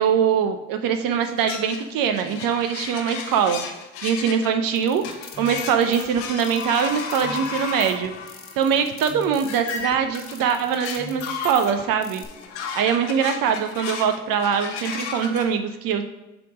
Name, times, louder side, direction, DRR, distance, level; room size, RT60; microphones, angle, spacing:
voice 1, 0.0-3.6 4.0-5.0 5.4-8.1 8.6-12.2 12.8-16.0, right 7 dB, 60° right, 7 dB, 0.6 m, -22 dB
sound 1, 1.2-4.5 4.8-15.4, left 5 dB, 80° left, 0.9 m, -34 dB
sound 2, 4.8-12.3, left 4 dB, 35° left, 1.3 m, -40 dB
7.6 x 2.9 x 5.2 m, 1.1 s
hypercardioid pair, 55°, 38 cm